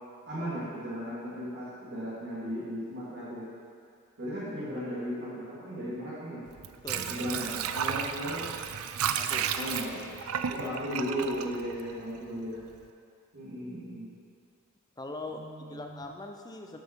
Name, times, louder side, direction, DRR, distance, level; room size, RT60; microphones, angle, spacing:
voice 1, 0.3-3.5 4.2-6.4 7.1-8.5 9.5-10.1 10.5-12.6 13.3-14.1 15.3-16.0, equal, 55° right, -9 dB, 2.4 m, -36 dB
Water / Sink (filling or washing), 6.5-12.3 12.7-12.8, right 8 dB, 75° right, 0.4 m, -33 dB
voice 2, 6.8-7.3 9.2-9.6 10.6-10.7 15.0-15.4 15.7-16.8, left 2 dB, 20° left, 3 dB, 0.6 m, -41 dB
12.5 x 5.5 x 4.6 m, 2.4 s
head